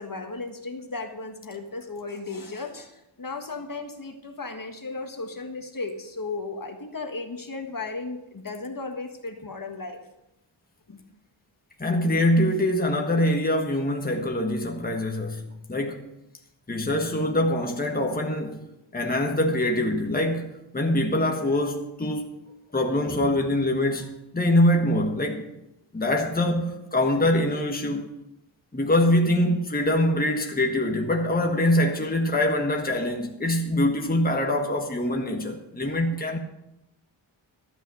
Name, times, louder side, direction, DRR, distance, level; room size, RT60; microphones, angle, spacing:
voice 1, 0.0-10.0 10.9-11.0, left 3 dB, 45° left, 1.6 m, -35 dB
voice 2, 11.8-16.1 16.7-18.7 18.9-22.3 22.7-25.5 25.9-28.1 28.7-36.4, left 1 dB, 20° left, 1.4 m, -24 dB
13.0 x 9.0 x 6.3 m
wide cardioid pair, 105°, 47 cm